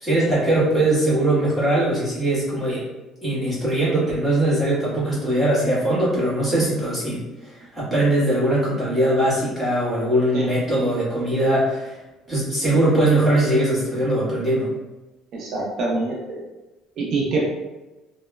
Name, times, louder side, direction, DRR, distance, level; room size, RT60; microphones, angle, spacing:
voice 1, 0.0-2.9 3.2-12.0 12.3-14.7, right 1 dB, 5° right, -10 dB, 1.2 m, -21 dB
voice 2, 15.3-16.4 17.0-17.4, right 3 dB, 55° right, -3 dB, 0.5 m, -25 dB
2.9 x 2.0 x 2.3 m, 1.1 s
cardioid pair, 140°, 0 cm